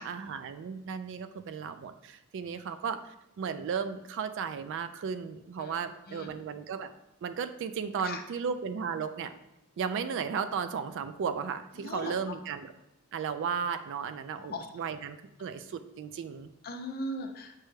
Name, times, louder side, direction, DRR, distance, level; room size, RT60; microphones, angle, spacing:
voice 1, 0.0-6.9 7.2-9.3 9.8-12.7 13.1-16.5, right 6 dB, 60° right, 10 dB, 0.3 m, -35 dB
voice 2, 11.8-12.3 14.4-14.8 16.6-17.6, left 1 dB, 45° left, 4 dB, 0.5 m, -39 dB
6.0 x 2.2 x 3.1 m, 0.93 s
head